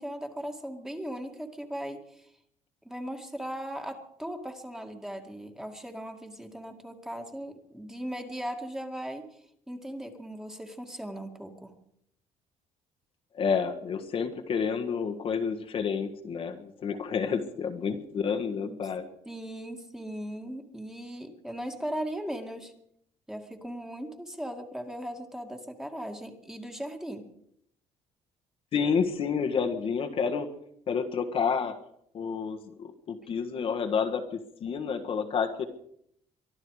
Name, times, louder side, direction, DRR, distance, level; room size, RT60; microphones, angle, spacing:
voice 1, 0.0-2.3 2.9-9.2 9.7-11.7 18.7-18.8 19.3-22.7 23.3-27.3, equal, 5° right, 4 dB, 2.1 m, -38 dB
voice 2, 13.3-19.1 28.7-30.5 30.9-31.7 32.1-35.6, left 6 dB, 50° left, 5 dB, 1.6 m, -29 dB
23.5 x 12.5 x 4.9 m, 0.70 s
cardioid pair, 130°, 12 cm